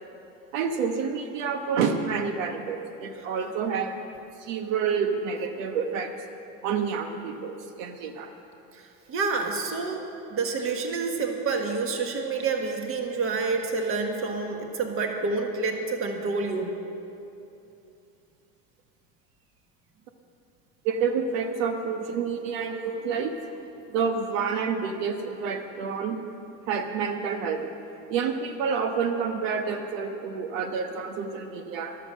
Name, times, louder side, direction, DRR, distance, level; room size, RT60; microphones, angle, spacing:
voice 1, 0.5-3.9 4.4-6.1 6.6-8.3 10.0-10.1 20.8-23.6 23.9-26.2 26.7-27.6 28.1-32.0, right 6 dB, 85° right, 6 dB, 1.2 m, -28 dB
voice 2, 9.1-10.0 10.3-16.7, right 4 dB, 35° right, 3 dB, 1.6 m, -28 dB
13.0 x 12.0 x 6.4 m, 2.9 s
supercardioid pair, 135°, 38 cm